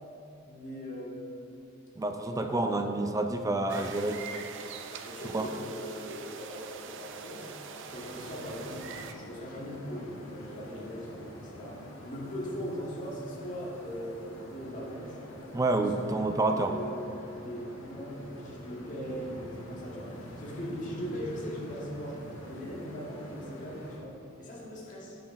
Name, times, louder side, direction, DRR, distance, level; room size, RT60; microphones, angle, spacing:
voice 1, 0.5-1.5 2.1-2.9 5.0-7.5 7.9-15.2 16.0-17.1 17.3-22.2 22.5-25.2, equal, 40° left, -5 dB, 1.8 m, -40 dB
voice 2, 2.0-4.2 5.3-5.5 15.5-16.7, right 2 dB, 15° right, 5 dB, 0.4 m, -28 dB
sound 1, 3.7-9.1, right 6 dB, 65° right, 0.6 m, -43 dB
sound 2, 7.9-24.0, equal, 65° left, 1.8 m, -46 dB
9.2 x 5.8 x 5.6 m, 2.8 s
head